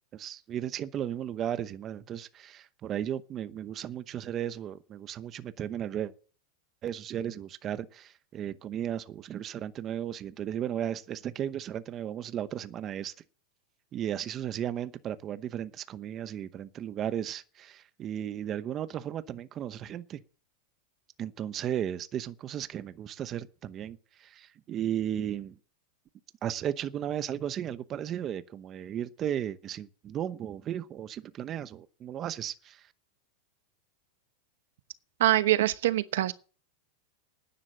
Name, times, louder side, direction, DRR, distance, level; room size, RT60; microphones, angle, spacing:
voice 1, 0.1-6.1 6.8-13.1 13.9-20.2 21.2-25.6 26.4-32.9, right 10 dB, 25° right, 0.9 m, -35 dB
voice 2, 35.2-36.3, right 14 dB, 70° right, 1.0 m, -24 dB
11.0 x 9.9 x 7.6 m
supercardioid pair, 165°, 0 cm